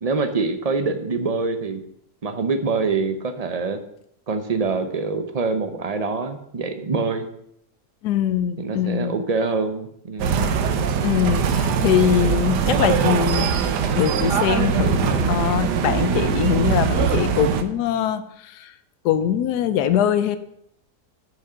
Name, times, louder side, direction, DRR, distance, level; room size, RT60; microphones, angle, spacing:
voice 1, 0.0-1.8 2.2-3.8 4.3-7.3 8.6-10.4 16.0-16.4, right 4 dB, 50° right, 7 dB, 0.4 m, -25 dB
voice 2, 8.0-9.2 11.0-13.5 14.0-18.7 19.0-20.4, left 10 dB, 80° left, 11 dB, 1.2 m, -22 dB
sound 1, 10.2-17.6, right 6 dB, 85° right, 1.4 m, -21 dB
8.6 x 6.2 x 5.6 m, 0.74 s
omnidirectional pair, 1.7 m